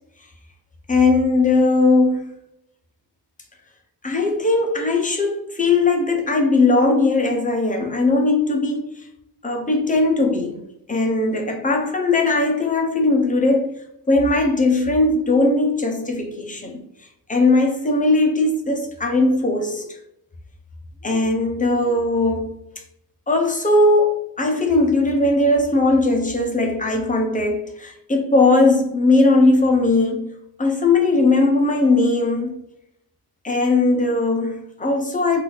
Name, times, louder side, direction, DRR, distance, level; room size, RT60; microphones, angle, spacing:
voice 1, 0.9-2.3 4.0-9.1 9.4-10.6 10.9-13.7 14.1-16.8 17.3-20.0 21.0-22.6 23.3-30.3 30.6-32.5 33.4-35.4, left 2 dB, 20° left, 0.8 m, -19 dB
4.0 x 2.7 x 4.7 m
wide cardioid pair, 155°, 42 cm